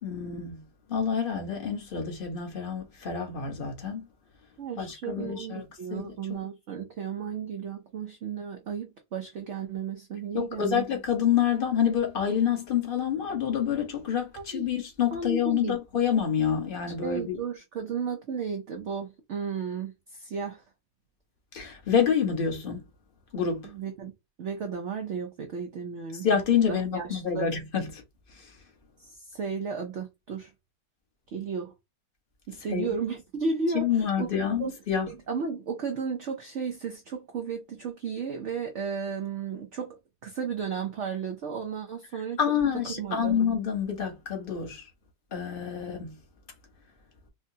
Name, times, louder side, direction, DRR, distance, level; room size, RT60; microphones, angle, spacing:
voice 1, 0.0-0.6 0.9-4.1 4.8-5.6 5.9-6.4 10.3-17.4 21.5-22.8 23.3-23.7 26.2-28.0 28.4-28.5 32.7-32.9 33.7-35.1 42.4-44.9 45.3-46.2, left 8 dB, 35° left, 1.0 m, -27 dB
voice 2, 4.6-10.8 14.4-14.7 15.1-15.8 17.0-20.6 23.6-24.1 24.4-26.3 26.7-27.5 29.0-30.5 31.3-31.7 32.5-34.3 34.6-34.7 35.1-42.4 42.9-43.4, right 5 dB, 65° right, 0.7 m, -34 dB
4.7 x 2.1 x 2.7 m
omnidirectional pair, 1.9 m